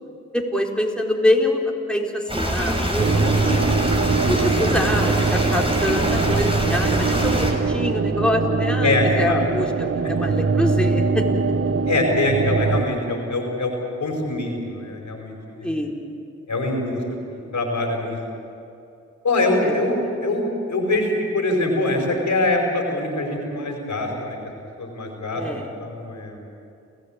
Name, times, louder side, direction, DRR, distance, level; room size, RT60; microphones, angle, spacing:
voice 1, 0.3-1.6 1.9-3.7 4.3-11.2 15.6-16.0 19.6-19.7 25.3-25.7, left 1 dB, 5° left, 0 dB, 4.3 m, -25 dB
sound 1, 2.3-7.5, equal, 20° right, 6.0 m, -24 dB
sound 2, 3.0-12.8, right 4 dB, 50° right, 1.3 m, -22 dB
voice 2, 8.8-9.6 11.8-13.7 14.0-15.7 16.5-17.0 17.3-18.2 19.2-24.4 24.8-26.4, left 2 dB, 75° left, 2 dB, 5.1 m, -24 dB
29.5 x 15.5 x 8.9 m, 2.6 s
cardioid pair, 45°, 29 cm